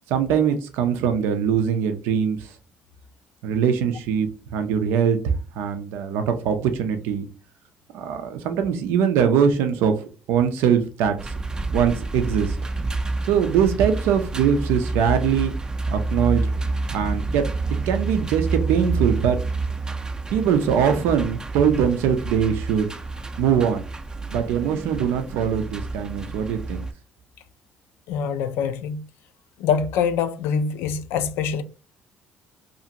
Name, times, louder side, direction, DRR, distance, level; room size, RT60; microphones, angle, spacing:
voice 1, 0.1-2.5 3.4-7.3 7.9-9.9 10.3-11.2 11.7-12.6 13.3-15.5 15.9-16.4 16.9-17.5 17.9-19.4 20.3-22.9 23.4-23.8 24.3-26.8, right 7 dB, 85° right, 0.4 m, -22 dB
sound 1, 11.2-26.9, right 3 dB, 20° right, 0.4 m, -28 dB
voice 2, 28.1-29.0 29.6-31.6, left 6 dB, 85° left, 0.3 m, -24 dB
2.5 x 2.4 x 2.8 m
supercardioid pair, 80°, 4 cm